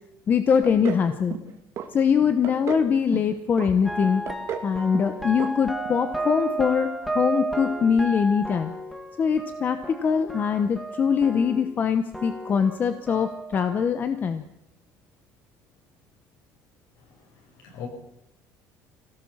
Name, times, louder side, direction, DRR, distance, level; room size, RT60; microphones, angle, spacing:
voice 1, 0.3-1.4 1.9-4.2 4.6-8.7 9.2-14.4, left 6 dB, 25° left, 10 dB, 1.0 m, -23 dB
sound 1, 0.6-1.0 1.3-1.9 2.2-2.9 3.1-3.7 4.0-4.7 4.9-5.1 5.4-5.5 5.8-5.9, right 8 dB, 40° right, 2.5 m, -33 dB
sound 2, 3.8-11.9 12.1-13.9, right 2 dB, ahead, 1.9 m, -33 dB
voice 2, 17.2-17.9, left 8 dB, 60° left, 2 dB, 7.4 m, -41 dB
24.0 x 17.5 x 7.3 m, 0.83 s
cardioid pair, 180°, 7 cm